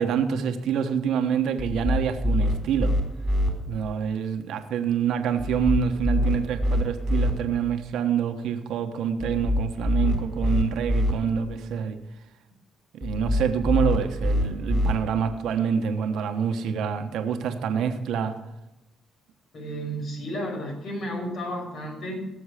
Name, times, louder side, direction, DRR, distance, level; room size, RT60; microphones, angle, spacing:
voice 1, 0.0-2.9 3.7-12.0 12.9-18.4, right 7 dB, 80° right, 6 dB, 1.2 m, -26 dB
sound 1, 1.6-3.5 5.4-7.3 9.2-11.1 13.0-14.9, left 1 dB, 15° left, 4.1 m, -25 dB
voice 2, 19.5-22.3, equal, 65° left, 0 dB, 5.8 m, -32 dB
18.0 x 7.1 x 5.0 m, 0.94 s
cardioid pair, 90°, 0 cm